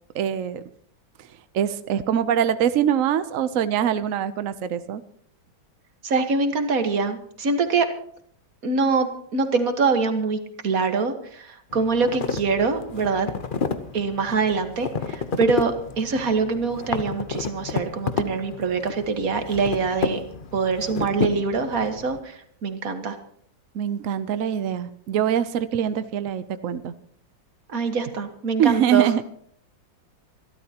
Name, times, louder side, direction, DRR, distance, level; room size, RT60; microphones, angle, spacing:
voice 1, 0.1-0.6 1.2-1.3 1.5-5.0 23.7-26.9 28.6-29.2, right 9 dB, 75° right, 12 dB, 0.7 m, -23 dB
voice 2, 6.0-7.9 8.6-13.3 13.9-20.2 20.5-23.2 27.7-29.1, right 4 dB, 45° right, 7 dB, 1.8 m, -24 dB
sound 1, 11.7-22.2, left 5 dB, 60° left, 0.5 m, -31 dB
27.0 x 12.5 x 2.9 m, 0.63 s
omnidirectional pair, 2.3 m